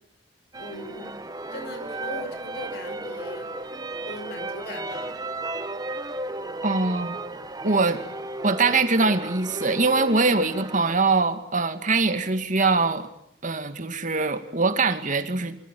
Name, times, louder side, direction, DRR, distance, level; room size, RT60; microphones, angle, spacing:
sound 1, 0.5-11.0, right 2 dB, 20° right, 1.3 m, -34 dB
voice 1, 0.6-1.1 1.5-3.5 4.1-5.2 7.6-7.9, left 1 dB, 65° left, 9 dB, 5.4 m, -39 dB
voice 2, 6.6-7.2 7.6-8.0 8.4-13.1 13.4-15.6, right 3 dB, 45° right, 9 dB, 2.2 m, -23 dB
26.0 x 24.5 x 9.3 m, 0.72 s
head